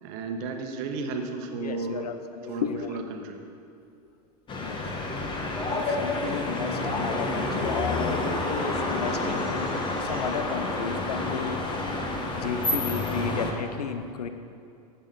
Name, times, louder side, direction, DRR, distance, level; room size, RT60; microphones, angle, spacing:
voice 1, 0.0-2.1 2.5-3.4, right 4 dB, 50° right, 4 dB, 1.2 m, -33 dB
voice 2, 1.5-3.0 4.6-4.8 5.7-12.0 12.3-14.3, left 6 dB, 75° left, 9 dB, 0.7 m, -33 dB
sound 1, 4.5-13.5, left 2 dB, 25° left, 1.4 m, -29 dB
13.5 x 8.2 x 3.9 m, 2.5 s
figure-of-eight pair, 90°, 20 cm